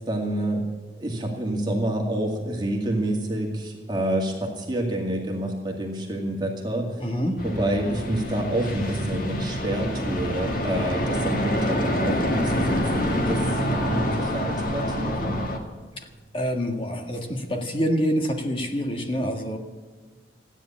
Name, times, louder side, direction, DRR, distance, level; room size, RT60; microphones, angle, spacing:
voice 1, 0.1-0.7 1.0-7.0 7.4-15.4, right 1 dB, 25° right, -1 dB, 2.1 m, -28 dB
voice 2, 7.0-7.4 16.0-16.1 16.3-19.6, equal, 30° left, 3 dB, 1.7 m, -26 dB
sound 1, 7.4-15.6, equal, 50° left, 2.0 m, -26 dB
15.5 x 10.0 x 8.6 m, 1.4 s
head